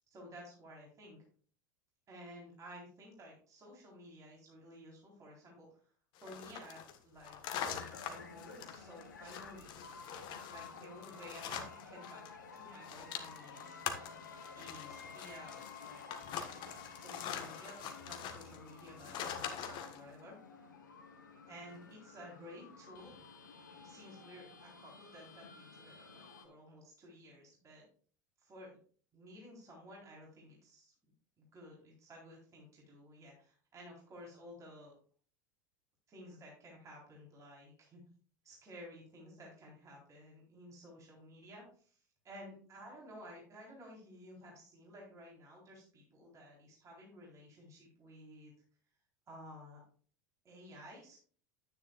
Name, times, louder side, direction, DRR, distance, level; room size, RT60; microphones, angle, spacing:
voice 1, 0.1-1.2 2.1-5.8 6.2-9.7 10.4-13.7 14.5-16.2 16.9-20.4 21.5-23.2 23.8-27.9 28.4-28.8 29.1-30.9 31.4-34.9 36.1-38.0 38.4-42.0 42.2-48.5 49.3-49.8 50.4-51.2, equal, 30° right, -2 dB, 4.1 m, -54 dB
sound 1, 6.2-12.3 12.6-20.0, left 8 dB, 50° left, 1.4 m, -44 dB
sound 2, 7.7-26.5, left 5 dB, 80° left, 1.7 m, -53 dB
10.0 x 9.9 x 2.5 m, 0.44 s
hypercardioid pair, 80°, 10 cm